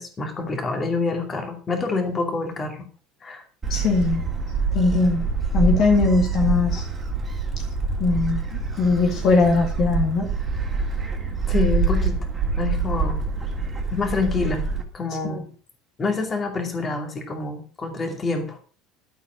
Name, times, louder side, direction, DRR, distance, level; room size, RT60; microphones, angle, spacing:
voice 1, 0.0-2.8 3.2-3.4 11.5-12.2 12.6-13.2 13.9-14.6 14.9-15.5 16.0-18.6, left 4 dB, 15° left, 4 dB, 2.5 m, -26 dB
Gull seagull, 3.6-14.8, right 4 dB, 10° right, 2.7 m, -25 dB
voice 2, 3.7-4.2 4.7-5.3 5.5-6.8 8.0-8.4 8.8-10.3 15.2-15.4, left 3 dB, 35° left, 2 dB, 2.1 m, -20 dB
12.5 x 8.1 x 6.1 m, 0.40 s
cardioid pair, 175°, 0 cm